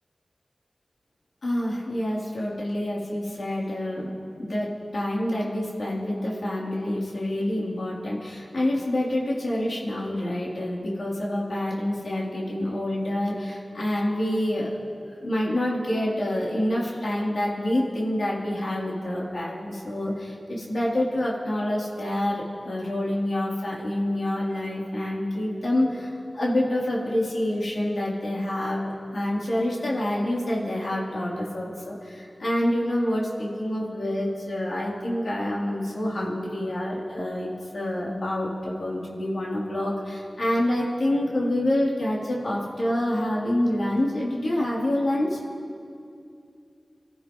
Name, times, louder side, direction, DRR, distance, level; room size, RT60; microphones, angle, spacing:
voice 1, 1.4-14.8 15.2-45.4, left 1 dB, 80° left, -5 dB, 3.3 m, -27 dB
27.5 x 14.5 x 3.1 m, 2.5 s
wide cardioid pair, 60°, 0 cm